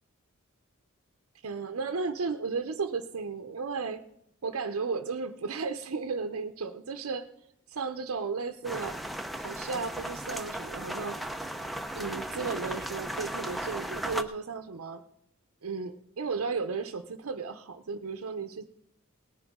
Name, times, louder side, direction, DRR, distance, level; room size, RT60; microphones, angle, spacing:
voice 1, 1.4-4.0 4.4-7.3 7.7-9.0 9.4-11.2 11.9-15.0 15.6-18.7, right 4 dB, 90° right, 7 dB, 0.6 m, -34 dB
sound 1, 8.6-14.2, right 1 dB, ahead, 0.6 m, -36 dB
18.5 x 11.0 x 3.6 m, 0.77 s
head